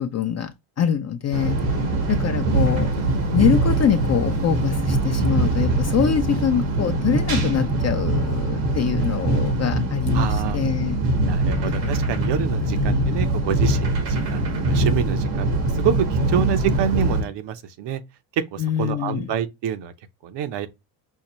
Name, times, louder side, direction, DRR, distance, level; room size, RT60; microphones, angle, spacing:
voice 1, 0.0-1.6 2.1-2.9 3.3-11.0 11.6-11.9 12.6-13.3 18.6-19.3, left 8 dB, 35° left, 0.5 m, -24 dB
sound 1, 1.3-17.2, right 2 dB, 80° right, 1.4 m, -22 dB
voice 2, 10.1-10.6 11.3-18.0 18.5-19.9 20.2-20.7, right 9 dB, 60° right, 0.8 m, -27 dB
5.5 x 2.1 x 3.0 m
supercardioid pair, 75°, 49 cm